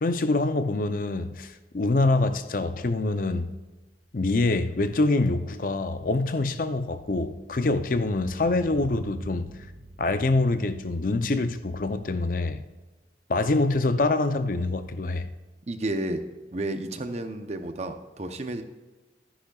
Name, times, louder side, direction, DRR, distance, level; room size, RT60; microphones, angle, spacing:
voice 1, 0.0-3.5 4.1-9.5 10.0-12.6 13.3-15.3, left 2 dB, 50° left, 0.6 m, -25 dB
sound 1, 3.7-13.1 13.4-13.5, right 1 dB, 65° right, 1.5 m, -46 dB
voice 2, 15.7-16.2 16.5-18.6, right 1 dB, 40° right, 0.7 m, -31 dB
13.5 x 10.0 x 2.3 m
head